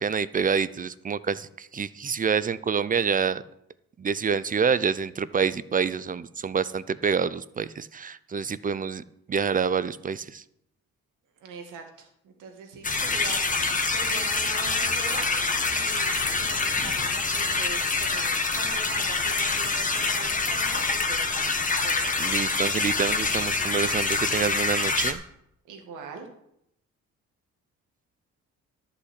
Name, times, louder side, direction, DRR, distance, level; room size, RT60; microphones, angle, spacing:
voice 1, 0.0-3.4 4.0-9.0 9.3-10.4 21.7-21.9 22.2-25.2, right 6 dB, 30° right, 17 dB, 0.5 m, -27 dB
voice 2, 11.4-21.5 21.8-22.1 25.7-26.3, right 5 dB, 85° right, 3 dB, 2.1 m, -42 dB
sound 1, 12.8-25.1, left 3 dB, 25° left, 1.4 m, -26 dB
11.5 x 5.8 x 8.2 m, 0.78 s
cardioid pair, 90°, 30 cm